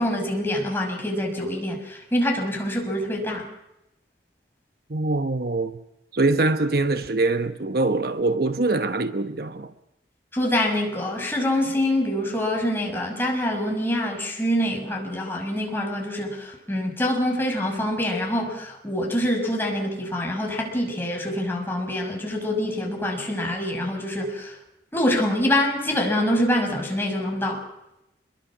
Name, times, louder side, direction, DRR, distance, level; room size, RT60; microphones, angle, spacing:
voice 1, 0.0-3.5 10.3-24.5 24.9-27.6, left 1 dB, 10° left, 6.1 m, -25 dB
voice 2, 4.9-5.8 6.1-9.7, right 2 dB, 60° right, 1.1 m, -23 dB
26.5 x 22.5 x 6.1 m
head